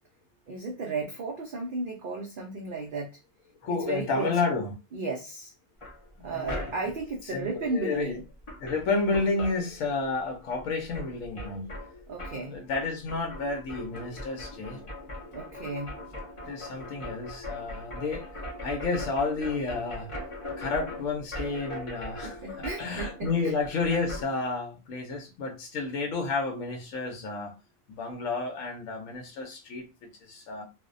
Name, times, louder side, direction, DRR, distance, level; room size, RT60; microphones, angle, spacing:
voice 1, 0.5-3.1 3.7-4.6 4.9-5.5 6.2-8.2 12.1-12.6 15.3-15.9 22.2-23.5, right 3 dB, 75° right, 0.4 m, -34 dB
voice 2, 3.6-4.7 6.2-6.7 7.3-8.2 8.6-11.7 12.5-14.8 16.4-18.3 18.6-20.1 20.6-22.4 22.8-27.5 28.0-30.6, left 3 dB, 70° left, 1.0 m, -31 dB
sound 1, 5.8-7.1 8.1-8.2 8.4-10.2 10.5-24.3, left 1 dB, 50° left, 0.3 m, -40 dB
2.5 x 2.0 x 2.4 m
omnidirectional pair, 1.5 m